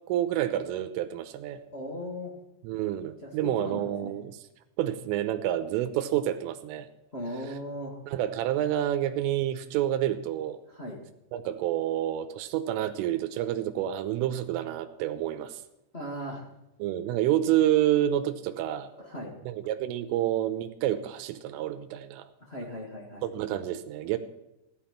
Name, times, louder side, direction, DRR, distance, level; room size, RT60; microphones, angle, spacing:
voice 1, 0.1-1.6 2.6-4.4 4.8-6.9 8.1-10.6 11.3-15.6 16.8-18.9 19.5-22.3 23.2-24.2, right 12 dB, 90° right, 9 dB, 3.4 m, -28 dB
voice 2, 1.7-2.4 3.2-4.1 7.1-8.0 10.7-11.0 15.9-16.5 19.0-19.3 22.4-23.2, equal, 25° left, -2 dB, 1.4 m, -38 dB
15.0 x 12.5 x 5.8 m, 0.89 s
omnidirectional pair, 5.8 m